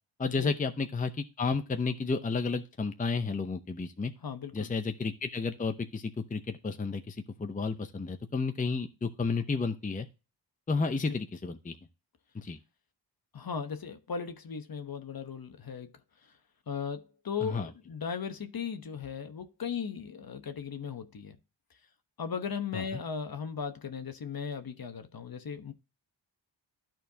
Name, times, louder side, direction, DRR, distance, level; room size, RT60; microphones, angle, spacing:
voice 1, 0.2-4.1 4.5-10.1 10.7-11.8 12.3-12.6 17.4-17.7 22.7-22.8, left 4 dB, 20° left, 0.6 m, -32 dB
voice 2, 4.2-4.7 11.1-11.2 13.3-15.9 16.7-21.4 22.2-25.7, left 6 dB, 50° left, 1.0 m, -37 dB
13.0 x 4.5 x 2.7 m
wide cardioid pair, 85°, 45 cm